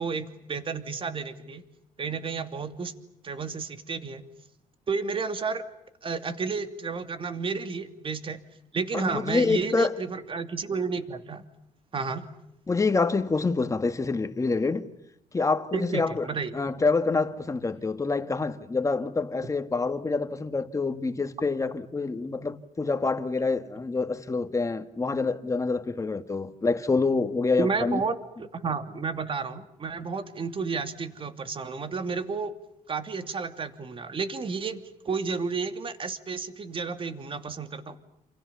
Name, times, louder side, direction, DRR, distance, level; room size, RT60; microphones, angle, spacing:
voice 1, 0.0-1.6 2.0-2.9 3.2-4.2 4.9-5.6 6.0-8.4 8.7-11.4 11.9-12.3 15.7-16.5 27.6-28.1 28.4-32.5 32.9-38.0, right 4 dB, 40° right, 2.8 m, -31 dB
voice 2, 8.9-9.9 12.7-14.9 15.3-16.3 16.5-28.0, left 3 dB, 20° left, 2.2 m, -26 dB
29.0 x 28.5 x 7.1 m
cardioid pair, 105°, 14 cm